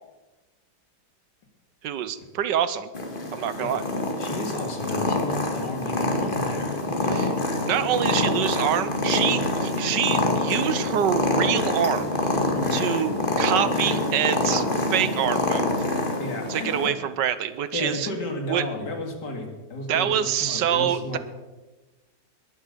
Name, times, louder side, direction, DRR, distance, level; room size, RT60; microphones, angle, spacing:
voice 1, 1.8-2.9 3.3-3.8 7.1-7.3 7.7-12.1 12.7-14.6 14.9-15.8 16.5-18.1 18.5-18.6 19.9-21.2, right 10 dB, 75° right, 14 dB, 1.4 m, -26 dB
Purr, 2.9-16.9, left 2 dB, 30° left, 2.0 m, -26 dB
voice 2, 4.2-7.2 12.5-12.9 14.5-14.7 16.2-16.9 17.7-21.2, left 2 dB, 65° left, 3 dB, 3.0 m, -33 dB
20.5 x 7.9 x 6.8 m, 1.2 s
omnidirectional pair, 2.0 m